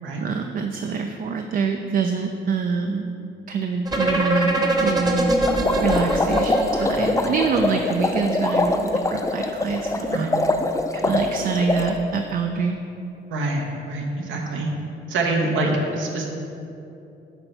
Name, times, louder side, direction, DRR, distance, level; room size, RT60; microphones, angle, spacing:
voice 1, 0.2-3.2 3.5-5.4 5.8-10.3 10.9-12.8, right 5 dB, 45° right, 5 dB, 0.4 m, -25 dB
sound 1, 3.9-7.7, right 1 dB, 20° right, 1.0 m, -22 dB
sound 2, 5.5-11.9, left 2 dB, 15° left, 0.4 m, -23 dB
voice 2, 13.3-14.7 15.1-16.2, right 2 dB, 75° right, 0 dB, 1.1 m, -25 dB
8.3 x 3.4 x 5.5 m, 2.8 s
cardioid pair, 90°, 20 cm